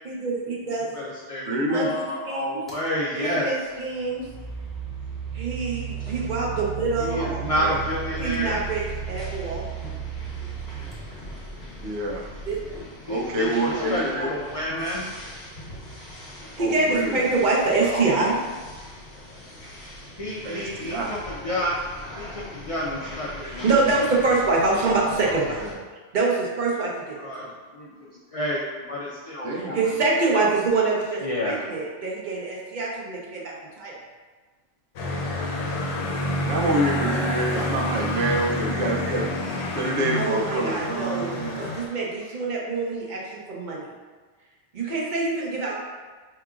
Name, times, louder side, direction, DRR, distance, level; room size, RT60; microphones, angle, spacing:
voice 1, 0.0-0.9 1.7-2.6 3.2-4.3 5.3-7.3 8.2-9.6 12.5-12.6 16.6-18.4 23.4-25.6 26.1-27.5 29.7-33.9 40.2-41.3 41.5-43.9 44.7-45.7, right 3 dB, 45° right, -3 dB, 0.7 m, -25 dB
voice 2, 0.9-3.5 6.0-6.1 7.0-8.6 13.1-15.1 17.8-18.1 18.8-18.9 20.2-23.7 27.2-29.8 31.2-31.6, left 1 dB, 70° left, -5 dB, 0.3 m, -30 dB
voice 3, 1.5-1.9 7.1-7.9 11.8-12.3 13.0-14.3 16.6-17.2 20.4-21.3 25.2-26.0 29.4-29.9 36.4-41.8, right 1 dB, 80° right, -1 dB, 0.9 m, -27 dB
sound 1, 2.7-2.9 3.8-11.8, right 10 dB, ahead, 0.6 m, -35 dB
sound 2, 7.4-25.7, left 1 dB, 45° left, 1.1 m, -40 dB
sound 3, 35.0-41.9, left 1 dB, 85° left, 0.9 m, -28 dB
4.7 x 2.9 x 2.4 m, 1.4 s
omnidirectional pair, 1.2 m